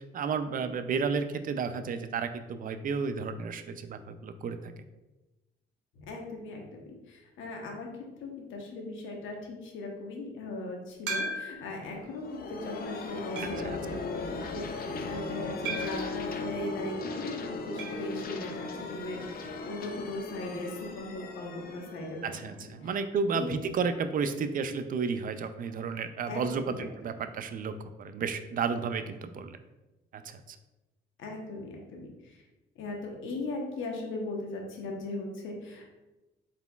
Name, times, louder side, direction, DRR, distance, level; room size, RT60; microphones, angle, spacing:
voice 1, 0.1-4.7 22.2-29.6 30.1-30.6, right 5 dB, 45° right, 10 dB, 0.4 m, -32 dB
voice 2, 5.9-7.9 8.2-22.4 22.8-23.0 23.3-23.7 26.3-26.9 31.2-32.4 32.8-35.9, left 2 dB, 80° left, 1 dB, 0.9 m, -38 dB
sound 1, 11.1-11.8 12.4-12.5 13.4-13.8 15.7-16.1 17.8-18.1 18.3-18.4 18.7-18.8 20.8-20.9, right 2 dB, 75° right, 0.8 m, -36 dB
sound 2, 11.8-23.3, left 3 dB, 50° left, 0.5 m, -38 dB
4.1 x 3.8 x 2.3 m, 1.1 s
cardioid pair, 90°, 20 cm